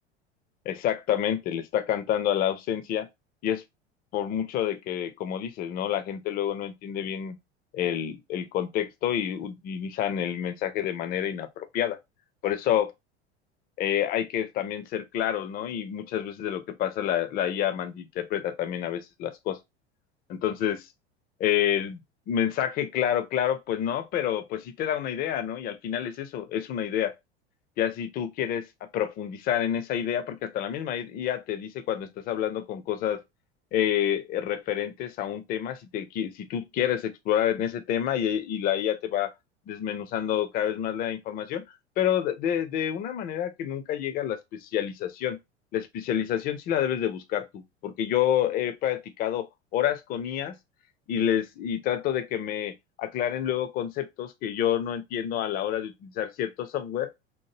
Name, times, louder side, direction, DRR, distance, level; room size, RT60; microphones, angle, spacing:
voice 1, 0.7-3.1 3.4-3.6 4.1-7.4 7.7-12.0 12.4-12.9 13.8-19.6 20.3-20.8 21.4-22.0 22.3-27.1 27.8-28.7 28.9-33.2 33.7-39.3 39.7-41.6 42.0-45.4 45.7-50.6 51.1-57.1, left 10 dB, 30° left, 0.4 m, -28 dB
2.9 x 2.1 x 3.1 m
figure-of-eight pair, 80°, 33 cm